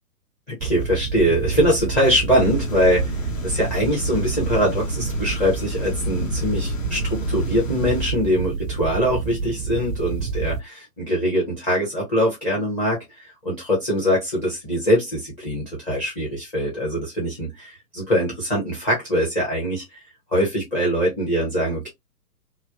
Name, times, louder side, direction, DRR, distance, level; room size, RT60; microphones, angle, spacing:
voice 1, 0.5-3.2 3.4-19.8 20.3-21.9, equal, 10° left, 0.6 m, -23 dB
sound 1, 0.6-10.6, right 6 dB, 80° right, 0.6 m, -28 dB
sound 2, 2.3-8.1, left 5 dB, 55° left, 1.1 m, -32 dB
3.1 x 2.0 x 2.4 m
figure-of-eight pair, 120°, 47 cm